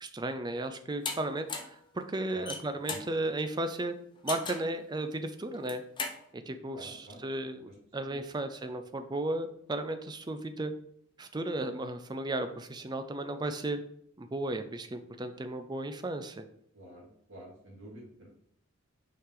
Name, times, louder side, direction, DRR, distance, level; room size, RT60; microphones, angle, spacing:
voice 1, 0.0-3.9 4.2-5.8 6.3-10.7 11.2-13.8 14.2-16.4, right 2 dB, 20° right, 8 dB, 0.4 m, -35 dB
sound 1, 1.0-1.2 1.5-1.8 2.3-3.1 4.3-4.7 5.5-6.2, left 4 dB, 20° left, 0.7 m, -36 dB
voice 2, 6.7-7.2 8.1-8.2 16.7-18.3, equal, 60° right, -3 dB, 2.3 m, -49 dB
5.7 x 4.8 x 3.7 m, 0.68 s
head